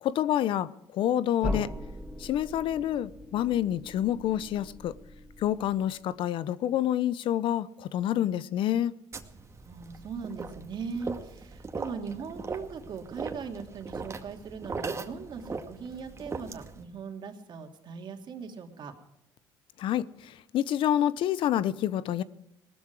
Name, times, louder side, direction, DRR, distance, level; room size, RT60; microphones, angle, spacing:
voice 1, 0.0-1.7 2.2-4.9 5.4-9.0 19.8-22.2, left 11 dB, 70° left, 0.8 m, -28 dB
sound 1, 1.4-6.1, left 1 dB, 10° right, 1.6 m, -39 dB
sound 2, 9.1-16.8, right 4 dB, 30° right, 2.1 m, -39 dB
voice 2, 9.6-18.9, right 5 dB, 55° right, 2.9 m, -39 dB
18.5 x 13.5 x 4.8 m
supercardioid pair, 80°, 9 cm